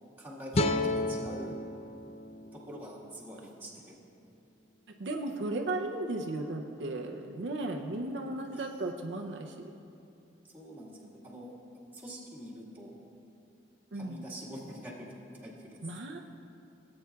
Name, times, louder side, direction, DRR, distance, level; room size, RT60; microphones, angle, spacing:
voice 1, 0.2-1.6 2.5-3.8 8.5-8.6 10.5-11.5 11.9-12.9 13.9-15.1 15.4-15.8, equal, 10° right, -7 dB, 1.7 m, -45 dB
sound 1, 0.5-3.7, left 2 dB, 35° left, 0.4 m, -33 dB
voice 2, 5.0-9.6 13.9-14.3 15.8-16.2, right 2 dB, 70° right, 2 dB, 0.6 m, -35 dB
17.5 x 8.7 x 2.3 m, 2.7 s
head